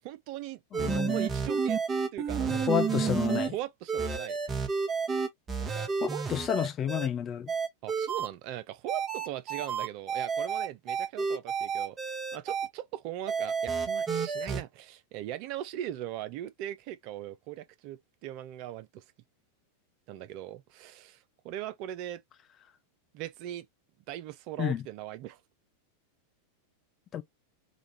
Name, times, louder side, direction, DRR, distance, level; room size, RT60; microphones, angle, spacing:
voice 1, 0.0-1.8 2.1-2.7 3.0-4.4 5.6-6.2 7.8-19.0 20.1-22.2 23.1-23.7 24.1-25.4, right 12 dB, 45° right, 0.5 m, -40 dB
voice 2, 0.7-1.2 2.5-3.5 6.0-7.5 24.6-24.8 27.1-27.2, left 9 dB, 30° left, 0.6 m, -30 dB
sound 1, 0.7-3.5 3.9-7.1 7.5-8.3 8.9-12.7 13.3-14.6, right 5 dB, 20° right, 1.0 m, -30 dB
5.0 x 2.4 x 2.8 m
figure-of-eight pair, 90°, 0 cm